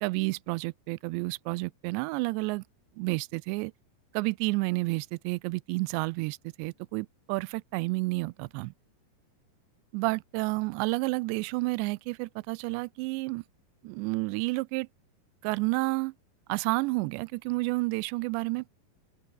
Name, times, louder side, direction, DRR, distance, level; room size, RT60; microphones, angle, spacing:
voice 1, 0.0-2.6 3.0-3.7 4.1-8.7 9.9-13.4 13.8-14.9 15.4-16.1 16.5-18.7, right 24 dB, 90° right, 2.8 m, -30 dB
open air
omnidirectional pair, 5.0 m